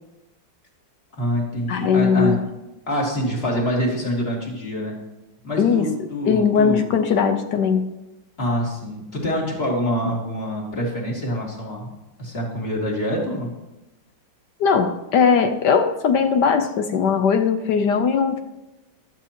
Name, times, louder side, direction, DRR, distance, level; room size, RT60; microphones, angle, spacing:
voice 1, 1.2-2.4 2.9-4.9 5.4-6.9 8.4-11.9 12.2-13.5, equal, 30° left, -2 dB, 2.8 m, -25 dB
voice 2, 1.7-2.4 5.6-5.9 6.3-7.8 14.6-18.4, left 6 dB, 65° left, 7 dB, 1.1 m, -19 dB
14.0 x 12.0 x 3.0 m, 0.98 s
omnidirectional pair, 2.3 m